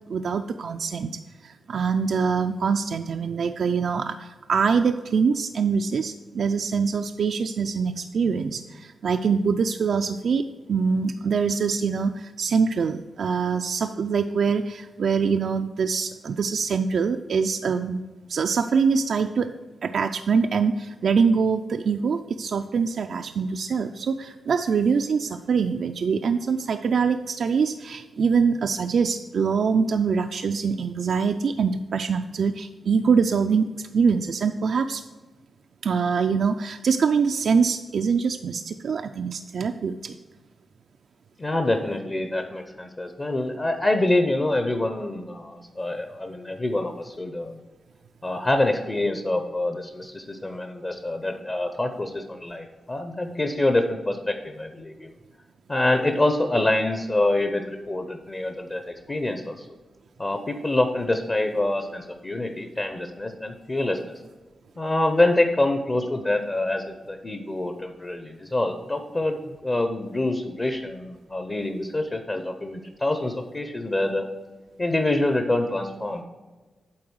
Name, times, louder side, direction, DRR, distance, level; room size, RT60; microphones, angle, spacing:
voice 1, 0.1-18.0 18.3-19.5 19.8-35.0 35.8-40.2, right 5 dB, 70° right, 7 dB, 0.3 m, -24 dB
voice 2, 41.4-47.6 48.2-55.1 55.7-59.7 60.2-64.2 64.8-74.2 74.8-76.2, left 2 dB, 30° left, 6 dB, 0.7 m, -26 dB
8.6 x 3.9 x 6.2 m, 1.3 s
cardioid pair, 80°, 0 cm